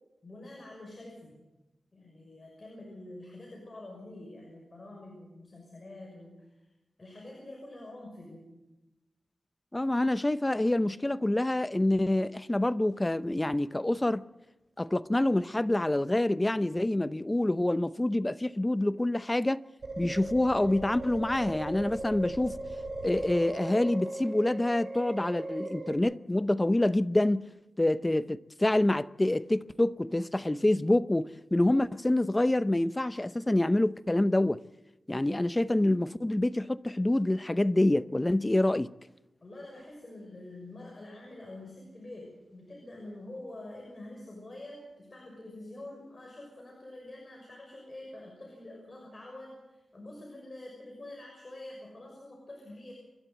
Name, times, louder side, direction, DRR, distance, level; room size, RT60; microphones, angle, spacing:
voice 1, 0.2-1.4 1.9-6.7 7.0-8.5 39.4-52.9, left 1 dB, 35° left, 6.2 m, -46 dB
voice 2, 9.7-14.2 14.8-19.6 20.0-22.6 23.0-27.5 27.8-34.6 35.1-38.9, left 1 dB, 15° left, 0.7 m, -27 dB
sound 1, 19.8-26.0, right 2 dB, 60° right, 6.5 m, -38 dB
28.0 x 12.0 x 8.1 m
wide cardioid pair, 90°, 0 cm